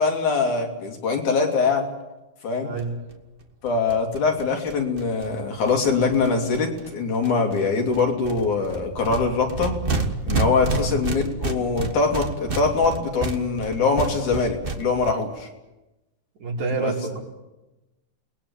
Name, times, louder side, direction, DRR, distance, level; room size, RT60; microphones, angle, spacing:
voice 1, 0.0-1.9 2.4-2.7 3.6-9.8 10.2-15.5 16.8-16.9, left 4 dB, 75° left, 2 dB, 4.4 m, -23 dB
voice 2, 2.6-2.9 10.8-11.0 16.4-17.2, right 4 dB, 70° right, -2 dB, 6.2 m, -28 dB
sound 1, 2.8-2.9 3.1-3.2 3.4-3.5 3.7-6.9 7.2-7.6 7.9-15.1, right 3 dB, 35° right, 0.9 m, -30 dB
29.0 x 20.0 x 7.4 m, 1.0 s
omnidirectional pair, 3.5 m